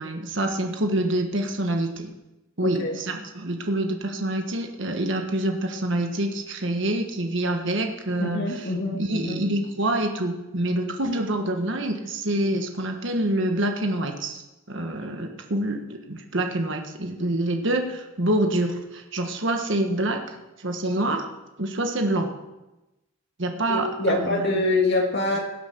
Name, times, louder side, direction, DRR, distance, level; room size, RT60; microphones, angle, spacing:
voice 1, 0.0-2.1 2.6-8.7 9.0-14.4 14.7-21.3 21.6-22.3 23.4-24.4, right 1 dB, 55° right, 4 dB, 1.4 m, -26 dB
voice 2, 2.6-3.0 8.2-9.4 23.7-25.4, left 2 dB, 50° left, 1 dB, 2.7 m, -25 dB
17.0 x 8.3 x 6.8 m, 1.0 s
head